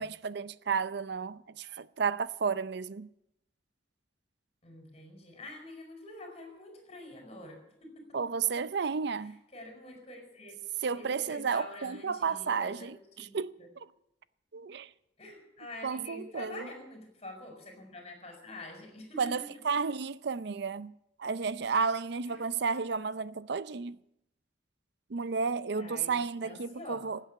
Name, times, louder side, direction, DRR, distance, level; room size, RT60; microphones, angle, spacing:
voice 1, 0.0-3.1 8.1-9.4 10.8-13.5 14.5-14.9 15.8-16.7 19.2-20.9 21.2-24.0 25.1-27.2, right 5 dB, 65° right, 0.6 m, -32 dB
voice 2, 4.6-7.9 9.5-10.5 10.9-12.9 13.2-13.7 15.2-19.5 22.2-22.4 25.7-26.1 26.4-27.0, left 2 dB, 35° left, 4.8 m, -46 dB
17.5 x 8.4 x 9.5 m
head